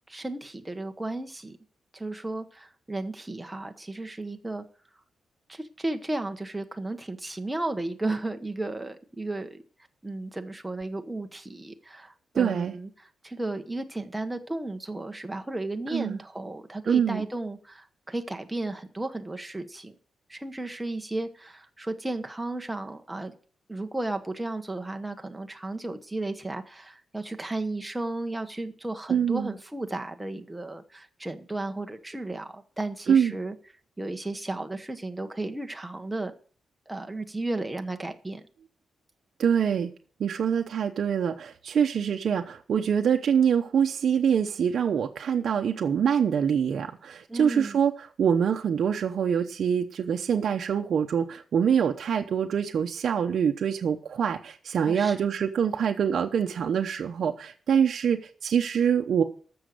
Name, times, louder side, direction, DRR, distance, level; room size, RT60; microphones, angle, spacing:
voice 1, 0.1-1.6 1.9-4.6 5.5-9.6 10.0-12.9 13.2-19.9 20.3-23.4 23.7-33.5 34.0-36.3 36.9-38.4 47.3-47.8 54.8-55.3, right 2 dB, 10° right, 6 dB, 1.0 m, -34 dB
voice 2, 12.3-12.8 15.9-16.2 16.9-17.3 29.1-29.5 33.1-33.4 39.4-39.9 40.2-59.2, right 7 dB, 60° right, 3 dB, 0.8 m, -25 dB
14.0 x 6.3 x 6.7 m, 0.44 s
wide cardioid pair, 155°, 0 cm